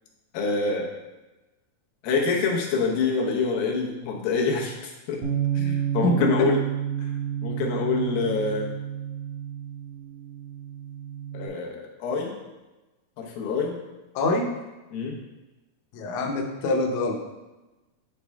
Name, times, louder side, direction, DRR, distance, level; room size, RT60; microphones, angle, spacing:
voice 1, 0.3-0.9 2.0-5.2 5.5-6.6 7.0-7.1 7.4-8.7 11.3-12.3 13.2-13.8 14.9-15.2, left 4 dB, 90° left, 0 dB, 2.9 m, -26 dB
Bass guitar, 5.2-11.5, right 10 dB, 80° right, 3.4 m, -30 dB
voice 2, 6.0-6.5 14.2-14.5 15.9-17.2, left 2 dB, 70° left, 1 dB, 2.0 m, -25 dB
10.0 x 4.4 x 3.5 m, 1.1 s
omnidirectional pair, 4.0 m